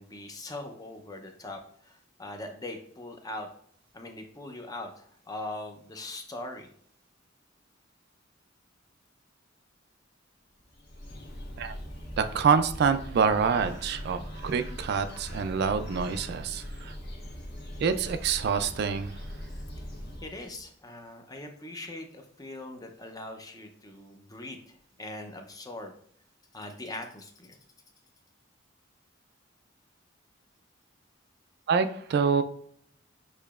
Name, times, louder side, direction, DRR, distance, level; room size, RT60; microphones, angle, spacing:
voice 1, 0.0-3.5 3.9-6.7 19.5-19.6 20.2-25.9 26.5-27.6, left 2 dB, 20° left, 4 dB, 0.5 m, -41 dB
Bird, 10.6-20.6, equal, 55° left, 1.3 m, -41 dB
voice 2, 12.2-16.9 17.8-19.1 31.7-32.4, right 6 dB, 55° right, 9 dB, 0.3 m, -26 dB
6.5 x 2.9 x 2.3 m, 0.63 s
head